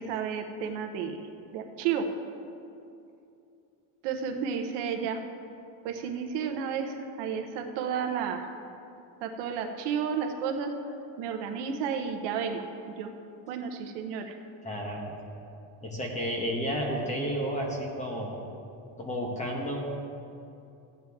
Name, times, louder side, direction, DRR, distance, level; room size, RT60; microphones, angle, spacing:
voice 1, 0.0-2.1 4.0-5.2 5.8-8.5 9.2-10.7 11.2-13.1 13.5-14.4, right 7 dB, 60° right, 5 dB, 0.9 m, -32 dB
voice 2, 14.6-15.1 15.8-18.4 19.0-19.8, equal, 15° left, 0 dB, 1.1 m, -31 dB
14.5 x 9.0 x 3.5 m, 2.7 s
cardioid pair, 170°, 47 cm